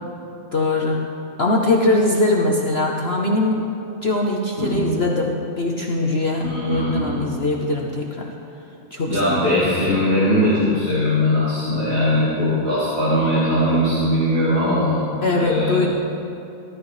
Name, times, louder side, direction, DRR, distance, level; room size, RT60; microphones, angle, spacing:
voice 1, 0.5-1.1 1.4-8.3 8.9-9.2 9.8-9.9 15.2-15.9, left 2 dB, 55° left, -1 dB, 0.7 m, -21 dB
voice 2, 4.6-5.0 6.4-7.2 9.1-15.8, left 1 dB, 85° right, -12 dB, 3.7 m, -20 dB
16.0 x 13.0 x 3.2 m, 2.9 s
omnidirectional pair, 2.2 m